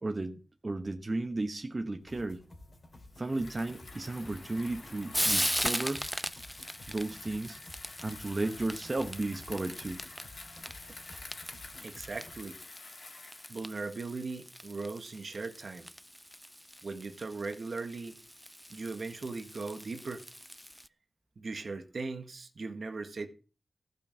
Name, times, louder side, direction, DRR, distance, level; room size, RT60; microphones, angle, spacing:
voice 1, 0.0-2.4 3.2-6.1 6.9-7.6 8.0-10.0, right 2 dB, 30° right, 1.1 m, -34 dB
sound 1, 2.0-12.3, left 1 dB, 40° left, 2.5 m, -53 dB
Bicycle, 3.2-13.7, left 3 dB, 65° left, 2.8 m, -50 dB
Frying (food), 3.9-20.9, equal, ahead, 0.5 m, -39 dB
voice 2, 11.8-12.6 13.5-15.9 16.8-18.2 18.7-20.2 21.4-23.3, right 3 dB, 60° right, 1.6 m, -39 dB
15.0 x 5.5 x 7.6 m
wide cardioid pair, 100°, 0 cm